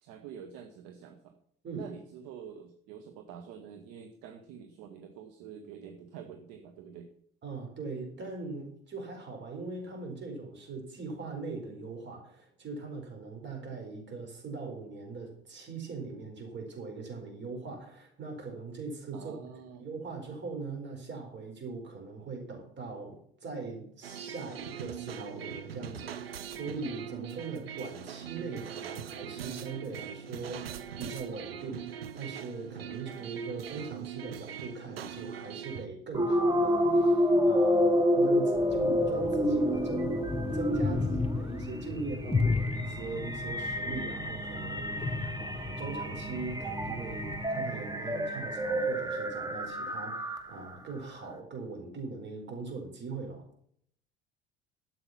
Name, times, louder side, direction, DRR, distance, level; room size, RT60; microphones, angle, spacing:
voice 1, 0.0-1.3 1.7-7.1 19.1-19.8, right 7 dB, 55° right, 7 dB, 1.4 m, -47 dB
voice 2, 7.4-19.4 19.8-40.2 40.5-53.4, right 4 dB, 40° right, 3 dB, 4.6 m, -41 dB
sound 1, 24.0-35.9, right 8 dB, 80° right, 0.8 m, -41 dB
sound 2, 36.1-50.7, equal, 15° right, 1.7 m, -29 dB
sound 3, 38.5-47.5, left 4 dB, 20° left, 1.1 m, -35 dB
12.0 x 7.8 x 5.8 m, 0.65 s
figure-of-eight pair, 60°, 29 cm